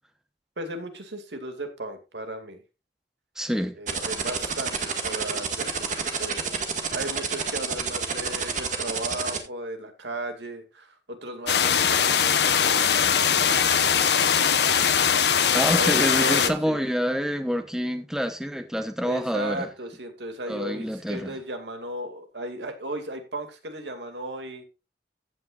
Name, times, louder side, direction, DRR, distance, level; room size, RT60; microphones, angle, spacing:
voice 1, 0.6-2.6 3.8-6.4 6.9-14.5 15.8-16.8 19.0-24.7, right 1 dB, 80° right, 2.3 m, -36 dB
voice 2, 3.4-3.8 15.5-19.7 20.5-21.4, equal, 5° right, 1.0 m, -27 dB
sound 1, 3.9-9.4, right 5 dB, 45° right, 1.8 m, -28 dB
sound 2, 11.5-16.5, left 7 dB, 70° left, 1.0 m, -21 dB
15.0 x 9.2 x 2.5 m
head